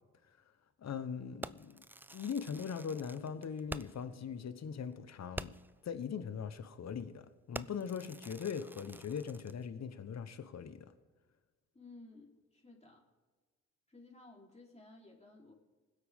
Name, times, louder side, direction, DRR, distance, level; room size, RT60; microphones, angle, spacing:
voice 1, 0.8-1.8 2.1-5.5 5.8-10.9, left 7 dB, 50° left, 1.2 m, -40 dB
Fireworks, 1.4-4.1 4.5-4.6 4.9-5.0 5.3-5.8 6.4-6.6 6.9-7.2 7.5-9.6, right 2 dB, 5° right, 0.3 m, -47 dB
voice 2, 11.7-13.0 13.9-15.5, left 2 dB, 20° left, 3.7 m, -56 dB
20.5 x 8.2 x 3.7 m
supercardioid pair, 50°, 34 cm